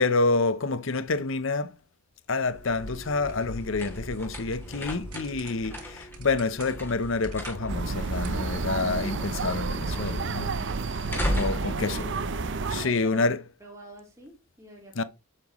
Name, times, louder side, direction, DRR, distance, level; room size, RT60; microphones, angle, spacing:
voice 1, 0.0-1.8 2.3-10.5 10.9-11.1 11.4-12.2 12.7-13.4 15.0-15.1, left 3 dB, 60° left, 0.7 m, -28 dB
sound 1, 2.4-9.7, right 1 dB, 90° right, 3.1 m, -45 dB
sound 2, 2.5-13.1, equal, 10° left, 2.9 m, -37 dB
voice 2, 5.7-6.0 11.4-12.4 12.7-13.3 13.6-15.0, right 1 dB, 15° right, 3.2 m, -47 dB
sound 3, 7.7-12.9, right 4 dB, 55° right, 0.6 m, -31 dB
9.8 x 7.6 x 3.1 m
head